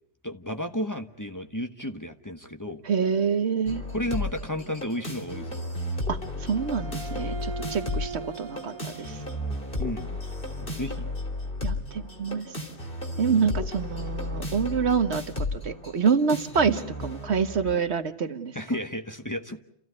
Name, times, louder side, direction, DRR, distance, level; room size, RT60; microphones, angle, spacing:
voice 1, 0.2-2.8 3.9-5.7 9.8-10.1 10.6-11.1 18.5-19.6, equal, 15° left, 5 dB, 1.2 m, -33 dB
voice 2, 2.8-3.8 6.1-9.2 11.6-12.4 13.2-15.2 15.6-18.5, right 6 dB, 70° right, 9 dB, 1.5 m, -26 dB
sound 1, 3.7-17.7, left 2 dB, 50° left, 3.5 m, -33 dB
Bowed string instrument, 6.5-9.9, right 3 dB, 30° right, 1.8 m, -40 dB
30.0 x 15.5 x 9.6 m, 0.74 s
omnidirectional pair, 1.2 m